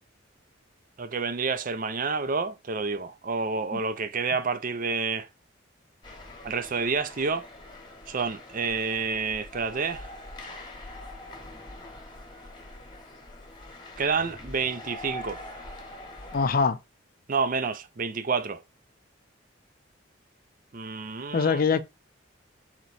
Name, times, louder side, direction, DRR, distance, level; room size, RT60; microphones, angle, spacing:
voice 1, 1.0-5.3 6.4-7.5 8.1-10.1 14.0-15.4 17.3-18.6 20.7-21.6, right 4 dB, 45° right, 0.5 m, -29 dB
sound 1, 6.0-16.7, left 1 dB, 25° left, 1.0 m, -44 dB
voice 2, 16.3-16.8 21.3-21.8, left 5 dB, 45° left, 0.5 m, -23 dB
4.4 x 3.0 x 4.1 m
head